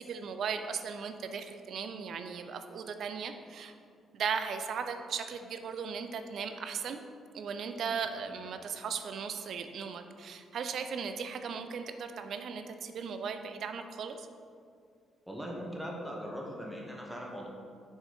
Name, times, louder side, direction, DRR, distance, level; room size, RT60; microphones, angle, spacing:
voice 1, 0.0-3.7 4.1-7.0 7.3-14.3, right 6 dB, 65° right, 8 dB, 0.4 m, -37 dB
voice 2, 15.3-17.5, equal, 5° right, -2 dB, 0.9 m, -40 dB
6.3 x 3.8 x 5.1 m, 2.3 s
cardioid pair, 90°, 0 cm